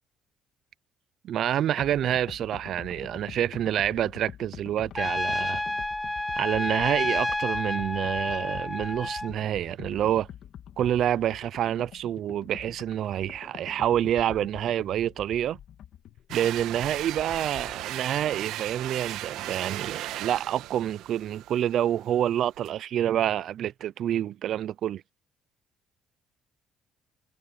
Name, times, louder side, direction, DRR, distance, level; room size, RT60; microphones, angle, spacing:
voice 1, 1.2-5.6 6.4-10.3 10.8-15.6 16.3-25.0, right 11 dB, 60° right, 0.4 m, -27 dB
sound 1, 1.8-17.8, left 10 dB, 60° left, 2.7 m, -46 dB
Trumpet, 4.9-9.3, left 1 dB, 5° left, 0.4 m, -30 dB
sound 2, 16.3-22.7, right 14 dB, 80° right, 1.3 m, -37 dB
cardioid pair, 125°, 0 cm